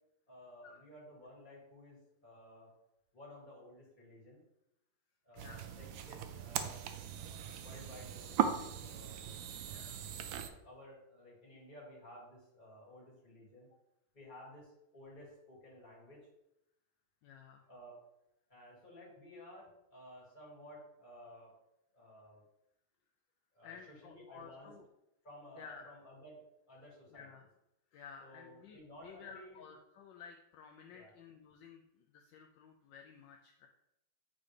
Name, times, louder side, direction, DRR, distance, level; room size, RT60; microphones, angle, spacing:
voice 1, 0.3-2.7 3.1-4.4 5.2-6.8 7.1-9.2 9.6-9.9 10.4-13.7 14.1-16.3 17.7-18.0 18.5-21.5 21.9-22.4 23.5-24.7 25.2-27.3 28.2-29.6 30.9-31.1, left 1 dB, 25° left, -5 dB, 2.4 m, -55 dB
voice 2, 5.3-5.7 9.7-10.0 17.2-17.7 23.6-24.9 25.6-25.9 27.1-27.5 27.9-33.7, left 6 dB, 75° left, 4 dB, 1.2 m, -54 dB
sound 1, 5.4-10.5, right 9 dB, 75° right, 1.3 m, -39 dB
8.5 x 4.1 x 3.3 m, 0.85 s
omnidirectional pair, 2.2 m